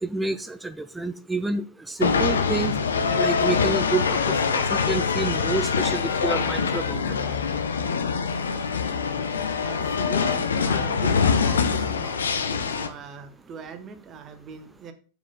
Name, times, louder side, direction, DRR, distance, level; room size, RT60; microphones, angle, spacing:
voice 1, 0.0-2.7 3.2-7.0, right 3 dB, 5° right, 0.6 m, -29 dB
sound 1, 2.0-12.9, left 5 dB, 70° left, 1.0 m, -24 dB
voice 2, 8.6-14.9, right 6 dB, 30° right, 1.5 m, -42 dB
7.3 x 7.1 x 3.9 m
figure-of-eight pair, 90°, 0 cm